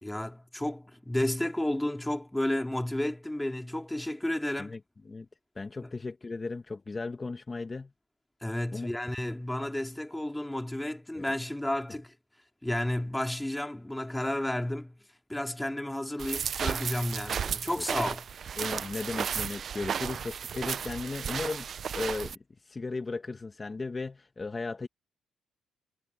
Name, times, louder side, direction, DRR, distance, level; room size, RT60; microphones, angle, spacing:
voice 1, 0.0-4.8 5.8-5.9 8.4-12.1 12.6-15.0 15.3-18.2, left 1 dB, 10° left, 2.6 m, -32 dB
voice 2, 5.6-7.9 8.7-8.9 11.1-11.3 17.8-17.9 18.6-21.7 21.9-22.4 22.7-24.9, left 3 dB, 25° left, 2.1 m, -36 dB
sound 1, 16.2-22.4, right 7 dB, 55° right, 0.7 m, -34 dB
cardioid pair, 90°, 0 cm